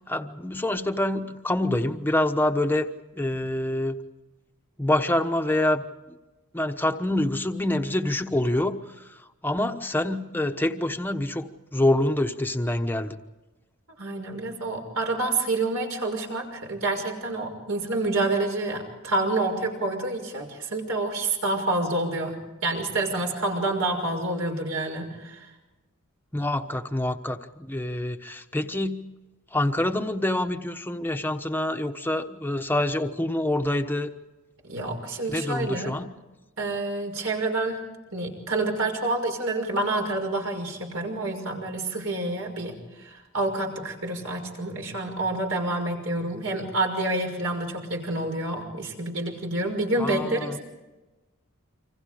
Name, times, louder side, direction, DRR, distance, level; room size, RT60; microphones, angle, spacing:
voice 1, 0.1-2.9 3.1-4.0 4.8-5.8 6.5-8.8 9.4-13.2 26.3-29.0 29.5-34.1 35.3-36.1 50.0-50.6, left 1 dB, 10° left, 6 dB, 1.1 m, -26 dB
voice 2, 14.0-22.3 22.6-25.5 34.6-36.0 36.6-50.6, right 2 dB, 75° right, 2 dB, 6.0 m, -28 dB
28.0 x 26.0 x 5.1 m, 1.1 s
head